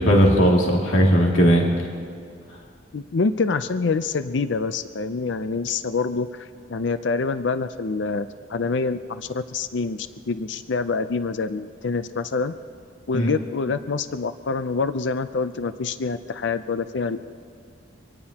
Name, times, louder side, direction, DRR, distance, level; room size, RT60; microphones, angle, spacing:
voice 1, 0.0-1.9 13.1-13.3, equal, 90° left, -2 dB, 2.5 m, -17 dB
voice 2, 2.9-12.6 13.1-17.3, left 4 dB, 65° left, 12 dB, 0.5 m, -26 dB
25.0 x 18.0 x 2.9 m, 2.3 s
head